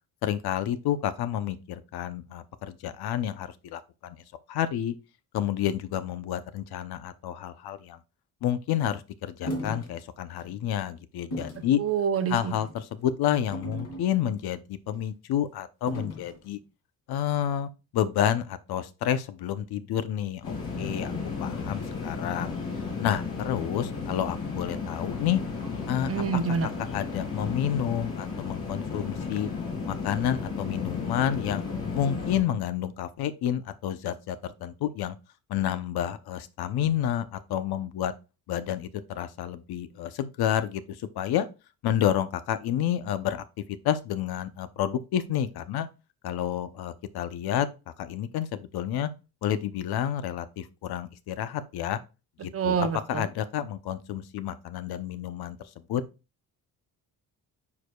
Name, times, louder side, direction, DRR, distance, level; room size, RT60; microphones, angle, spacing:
voice 1, 0.2-4.2 4.5-4.9 5.3-8.0 8.4-11.8 12.3-16.6 17.1-21.1 21.4-22.5 23.0-25.4 25.9-26.2 26.9-29.5 29.9-31.6 31.9-35.2 35.5-38.1 38.5-41.5 41.8-43.4 43.8-45.9 46.2-47.7 48.0-49.1 49.4-52.0 52.4-55.6 55.9-56.0, left 10 dB, 80° left, 0.8 m, -29 dB
sound 1, 9.5-9.9 10.4-10.5 11.3-11.7 12.5-12.8 13.5-14.4 15.9-16.4, equal, 45° left, 2.4 m, -36 dB
voice 2, 11.8-12.5 26.1-26.7 52.5-53.3, right 7 dB, 40° right, 0.8 m, -27 dB
sound 2, 20.4-32.4, left 5 dB, 65° left, 4.0 m, -34 dB
9.6 x 4.8 x 2.3 m
cardioid pair, 165°, 37 cm